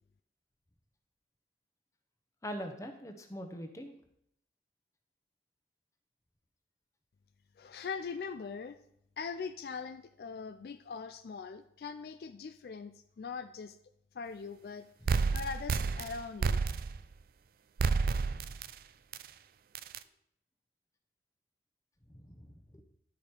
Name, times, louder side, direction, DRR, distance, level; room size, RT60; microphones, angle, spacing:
voice 1, 2.4-3.9 18.4-18.5 22.1-22.8, equal, 20° left, 5 dB, 0.8 m, -43 dB
voice 2, 7.6-8.8 9.2-13.8 14.1-14.9 15.3-16.6, left 5 dB, 60° left, 10 dB, 0.3 m, -41 dB
sound 1, 15.1-17.1 17.8-18.7 19.1-19.2 19.7-20.0, right 4 dB, 55° right, 0.3 m, -30 dB
11.0 x 5.1 x 4.4 m, 0.74 s
head